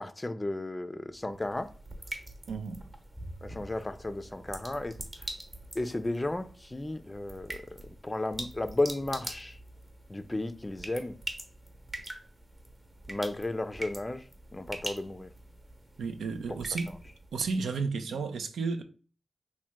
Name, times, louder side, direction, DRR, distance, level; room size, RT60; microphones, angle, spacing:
voice 1, 0.0-1.7 3.4-5.0 5.8-9.6 10.1-11.2 13.1-14.2 14.5-15.3, left 2 dB, 25° left, 0.4 m, -34 dB
sound 1, 1.1-17.6, right 1 dB, 30° right, 0.9 m, -44 dB
voice 2, 2.5-2.9 16.0-16.9 17.3-18.8, right 4 dB, 90° right, 0.3 m, -32 dB
2.9 x 2.1 x 3.3 m
cardioid pair, 45°, 0 cm